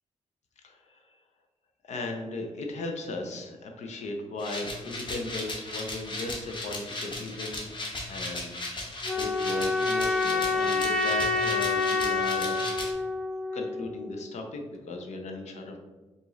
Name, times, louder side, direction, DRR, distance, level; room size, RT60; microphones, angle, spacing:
voice 1, 0.6-1.2 1.8-12.9 13.5-15.8, left 2 dB, 70° left, 3 dB, 0.8 m, -37 dB
sound 1, 4.4-12.9, left 2 dB, 40° left, 1.0 m, -36 dB
sound 2, 9.0-14.1, left 3 dB, 5° left, 0.5 m, -27 dB
4.8 x 2.7 x 3.9 m, 1.2 s
cardioid pair, 110°, 12 cm